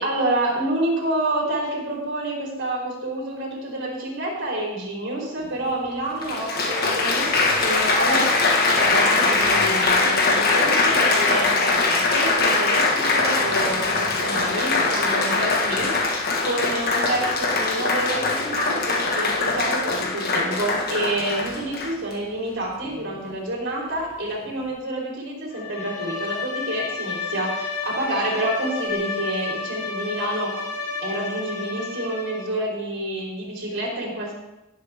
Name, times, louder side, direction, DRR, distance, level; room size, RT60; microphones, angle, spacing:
voice 1, 0.0-30.5 31.0-34.3, right 1 dB, 55° right, -3 dB, 4.4 m, -28 dB
Applause, 5.4-5.5 6.2-22.1 22.9-23.2, left 3 dB, 45° left, 1.5 m, -22 dB
Bowed string instrument, 25.5-32.6, left 4 dB, 90° left, 3.8 m, -31 dB
16.5 x 7.7 x 3.6 m, 0.96 s
head